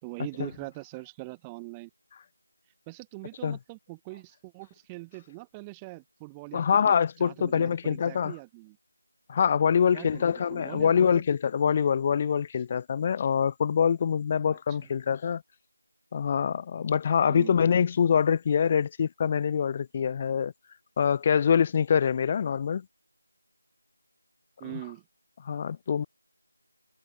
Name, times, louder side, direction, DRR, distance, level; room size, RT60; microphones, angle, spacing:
voice 1, 0.0-1.9 2.9-8.8 9.9-11.2 14.8-14.9 17.2-17.5 24.6-25.0, right 25 dB, 5° right, 4.4 m, -42 dB
voice 2, 6.5-8.3 9.3-15.4 16.1-20.5 21.0-22.8 25.4-26.1, left 7 dB, 15° left, 1.6 m, -25 dB
figure-of-eight pair, 170°, 0 cm